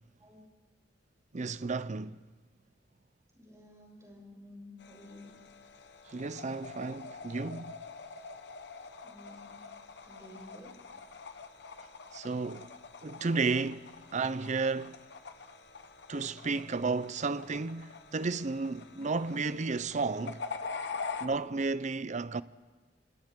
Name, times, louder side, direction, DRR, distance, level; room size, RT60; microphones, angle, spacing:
voice 1, 1.3-2.2 6.1-7.8 12.1-12.7 13.0-15.0 16.1-20.4 21.2-22.4, right 4 dB, 40° right, 0.5 m, -33 dB
voice 2, 3.3-5.4 9.0-9.7 10.0-10.7, left 1 dB, 15° right, 6.7 m, -52 dB
sound 1, 4.8-21.3, left 4 dB, 65° left, 1.0 m, -45 dB
27.5 x 27.0 x 3.7 m
head